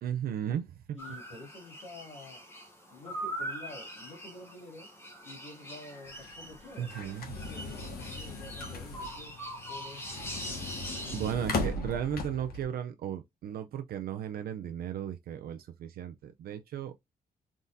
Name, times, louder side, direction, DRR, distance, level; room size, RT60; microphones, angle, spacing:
voice 1, 0.0-1.0 6.8-7.3 11.1-16.9, right 9 dB, 70° right, 0.5 m, -35 dB
voice 2, 0.9-2.4 2.9-4.9 5.2-9.3 9.6-10.2, left 2 dB, 45° left, 2.4 m, -49 dB
sound 1, 1.0-11.3, right 1 dB, 15° left, 0.9 m, -42 dB
sound 2, 6.1-12.6, left 3 dB, 75° left, 1.2 m, -38 dB
4.0 x 3.6 x 2.6 m
wide cardioid pair, 175°, 16 cm